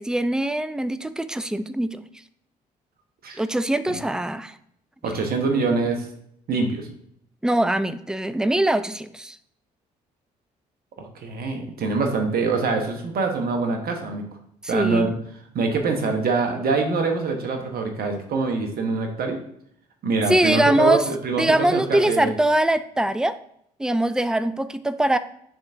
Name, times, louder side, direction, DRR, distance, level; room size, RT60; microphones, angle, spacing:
voice 1, 0.0-2.0 3.4-4.5 5.0-5.1 7.4-9.4 14.6-15.1 20.3-21.0 21.3-23.4 23.8-25.2, right 1 dB, 5° right, 14 dB, 0.4 m, -22 dB
voice 2, 5.0-6.1 6.5-6.9 11.0-14.3 14.7-15.1 15.5-19.4 20.0-22.3, right 4 dB, 50° right, 4 dB, 1.1 m, -24 dB
10.0 x 3.5 x 2.6 m, 0.70 s
hypercardioid pair, 50°, 20 cm